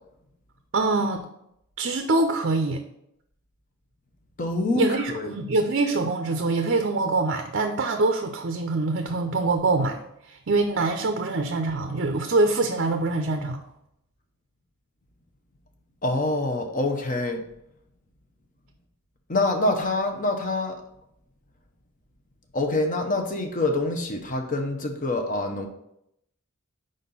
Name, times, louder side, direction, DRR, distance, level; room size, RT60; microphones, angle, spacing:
voice 1, 0.7-1.3 1.8-2.8 4.8-10.0 10.2-13.6, right 3 dB, 55° right, 5 dB, 0.5 m, -24 dB
voice 2, 4.4-5.3 16.0-17.4 19.3-20.8 22.5-25.7, left 2 dB, 40° left, 4 dB, 0.8 m, -26 dB
5.1 x 4.2 x 5.4 m, 0.78 s
head